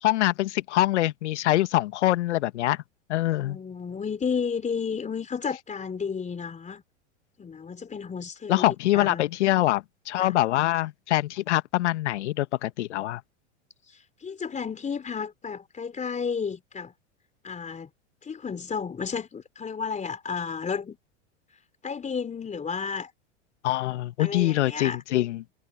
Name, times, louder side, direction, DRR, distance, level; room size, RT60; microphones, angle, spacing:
voice 1, 0.0-2.8 3.1-3.6 8.5-13.2 23.6-25.4, left 15 dB, 75° left, 1.5 m, -24 dB
voice 2, 3.4-6.8 7.4-8.7 8.9-9.2 10.2-10.3 13.9-16.9 17.4-17.9 18.2-21.0 21.8-23.1 24.2-25.0, left 6 dB, 20° left, 3.8 m, -32 dB
hypercardioid pair, 100°, 35 cm